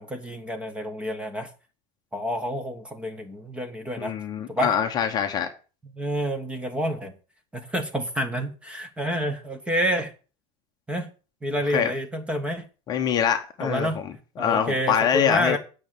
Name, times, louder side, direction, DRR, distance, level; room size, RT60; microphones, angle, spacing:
voice 1, 0.0-1.5 2.1-4.1 4.5-4.7 5.9-7.1 7.5-10.1 10.9-11.1 11.4-12.6 13.6-14.0 14.4-15.6, equal, 5° right, 1.1 m, -28 dB
voice 2, 4.0-5.5 11.7-11.9 12.9-13.9 14.4-15.6, left 8 dB, 25° left, 1.0 m, -24 dB
8.9 x 6.6 x 7.4 m
supercardioid pair, 180°, 17 cm